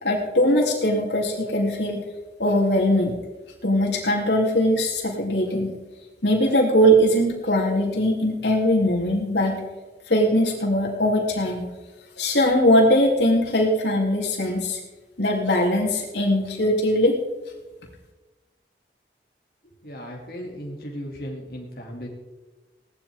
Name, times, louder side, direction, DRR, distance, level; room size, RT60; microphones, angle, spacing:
voice 1, 0.0-2.0 2.4-3.1 3.6-5.7 6.2-9.6 10.1-11.7 12.2-14.8 15.2-17.1, equal, 85° left, -1 dB, 3.3 m, -21 dB
voice 2, 19.8-22.1, equal, 55° left, -2 dB, 2.8 m, -36 dB
18.0 x 12.0 x 3.7 m, 1.2 s
head